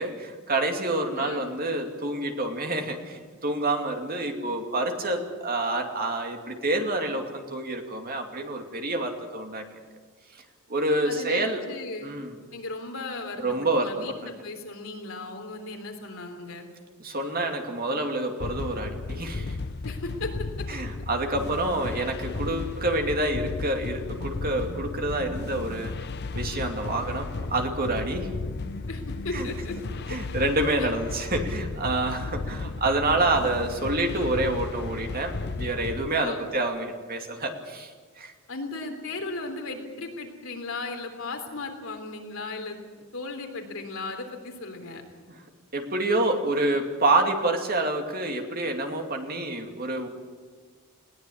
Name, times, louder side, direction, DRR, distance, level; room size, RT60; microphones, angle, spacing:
voice 1, 0.0-9.6 10.7-11.6 12.0-12.3 13.4-14.1 17.0-19.6 20.7-25.9 26.3-28.3 29.3-29.5 30.1-37.9 38.2-38.3 45.7-50.1, right 2 dB, 45° right, 4 dB, 2.5 m, -27 dB
voice 2, 1.1-1.5 11.0-12.1 12.5-16.7 19.8-20.3 20.6-20.7 28.1-28.2 28.9-29.8 30.1-30.4 30.8-30.9 36.1-36.5 38.5-45.0, left 3 dB, 65° left, 4 dB, 3.4 m, -36 dB
sound 1, 18.4-36.1, left 3 dB, 50° left, 0.6 m, -34 dB
20.5 x 18.0 x 8.6 m, 1.5 s
head